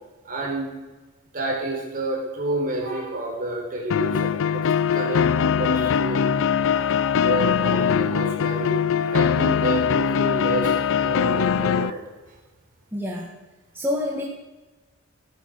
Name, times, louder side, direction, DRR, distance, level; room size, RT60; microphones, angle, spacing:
voice 1, 0.2-0.8 1.3-4.6 4.9-12.0, right 2 dB, 40° right, 0 dB, 4.2 m, -30 dB
sound 1, 3.9-11.9, left 7 dB, 65° left, 0.4 m, -21 dB
voice 2, 12.9-13.3 13.7-14.3, left 1 dB, 10° right, -3 dB, 1.8 m, -27 dB
15.0 x 9.6 x 6.7 m, 1.2 s
head